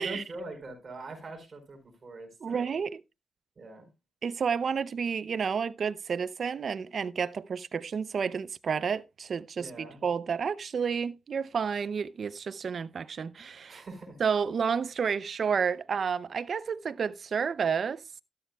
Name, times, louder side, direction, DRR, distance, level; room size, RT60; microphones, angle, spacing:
voice 1, 0.0-2.8 3.6-3.9 9.6-10.0 13.7-14.2, right 2 dB, 40° right, 4.7 m, -43 dB
voice 2, 2.4-3.0 4.2-13.8 14.2-18.0, right 6 dB, 55° right, 0.6 m, -30 dB
13.0 x 12.0 x 2.3 m
cardioid pair, 85°, 0 cm